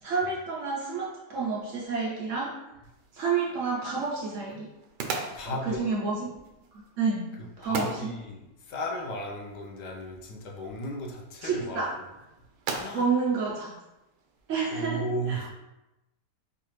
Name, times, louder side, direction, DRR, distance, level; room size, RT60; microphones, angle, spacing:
voice 1, 0.0-2.5 3.1-4.7 5.4-6.3 7.0-7.3 7.6-8.1 11.4-11.9 12.9-13.8 14.5-15.0 15.3-15.5, right 4 dB, 60° right, -4 dB, 0.9 m, -29 dB
sound 1, 2.8-14.5, right 4 dB, 80° right, 1.2 m, -41 dB
voice 2, 5.3-5.9 7.6-11.9 12.7-13.1 14.7-15.5, equal, 80° left, 0 dB, 1.4 m, -35 dB
4.8 x 2.4 x 3.1 m, 0.96 s
omnidirectional pair, 1.8 m